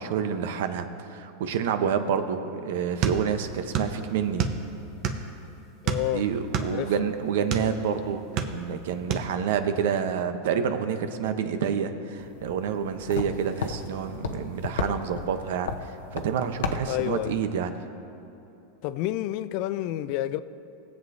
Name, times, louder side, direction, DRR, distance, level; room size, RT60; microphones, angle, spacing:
voice 1, 0.0-4.5 6.1-17.7, right 7 dB, 75° right, 9 dB, 0.8 m, -28 dB
sound 1, 3.0-5.4 5.8-7.7 8.2-8.8 9.1-9.3, right 6 dB, 45° right, 0.9 m, -28 dB
voice 2, 5.8-6.2 6.7-6.9 16.9-17.4 18.8-20.4, left 14 dB, 55° left, 14 dB, 0.4 m, -29 dB
sound 2, 12.2-17.4, left 5 dB, 90° left, 0.8 m, -35 dB
20.5 x 7.9 x 2.7 m, 3.0 s
supercardioid pair, 130°, 0 cm